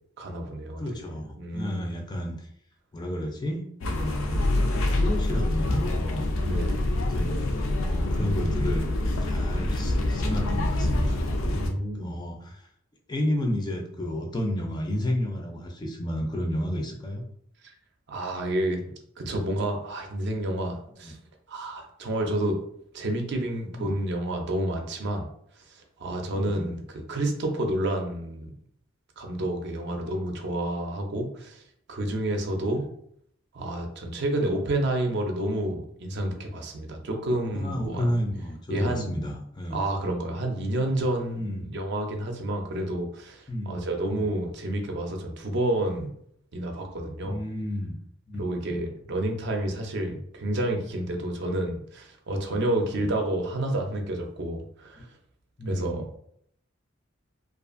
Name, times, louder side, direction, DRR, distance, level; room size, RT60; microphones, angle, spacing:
voice 1, 0.2-1.0 1.4-1.9 6.4-6.8 11.5-12.2 18.1-18.8 19.2-21.2 21.5-22.6 22.9-25.3 25.7-28.5 29.2-31.6 31.9-32.9 33.5-38.1 38.7-39.1 39.7-46.1 46.5-47.4 48.4-55.1 55.7-56.0, right 1 dB, 60° right, 4 dB, 0.5 m, -29 dB
voice 2, 0.8-2.5 2.9-6.3 6.9-7.5 7.8-8.9 9.2-11.2 11.9-12.7 13.1-17.2 21.0-21.1 23.7-23.9 26.3-26.7 32.7-32.9 37.5-39.8 41.4-41.7 43.5-44.2 47.2-48.0 48.3-48.4 48.7-48.8 52.3-52.4 54.9-55.0 55.6-56.2, left 1 dB, 20° left, 1 dB, 0.3 m, -32 dB
sound 1, 3.8-11.7, left 1 dB, 85° left, 0.4 m, -26 dB
2.4 x 2.4 x 2.4 m, 0.69 s
head